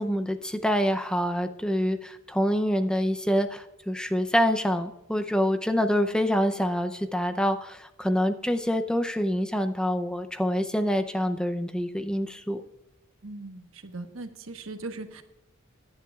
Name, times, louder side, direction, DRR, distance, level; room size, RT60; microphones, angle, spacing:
voice 1, 0.0-12.6, equal, 5° left, 8 dB, 0.5 m, -26 dB
voice 2, 13.2-15.2, right 2 dB, 80° right, 7 dB, 1.1 m, -39 dB
17.0 x 10.5 x 2.3 m, 0.90 s
head